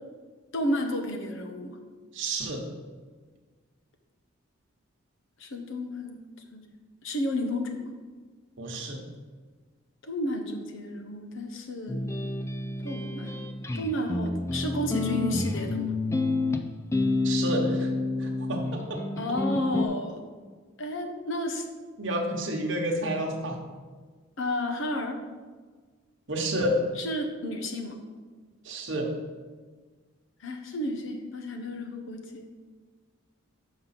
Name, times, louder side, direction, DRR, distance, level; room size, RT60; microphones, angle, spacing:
voice 1, 0.5-1.8 5.4-6.2 6.5-6.7 7.0-7.9 10.0-12.0 12.8-13.3 13.7-15.9 19.2-20.2 20.8-21.7 24.4-25.2 27.0-28.0 30.4-32.5, left 1 dB, 65° left, 4 dB, 1.1 m, -32 dB
voice 2, 2.1-2.7 8.6-9.0 17.2-17.9 18.2-18.6 22.0-23.6 26.3-26.8 28.6-29.1, right 1 dB, 60° right, 0 dB, 1.2 m, -29 dB
sound 1, 11.9-19.8, left 2 dB, 15° left, 0.4 m, -29 dB
6.9 x 5.4 x 5.8 m, 1.4 s
head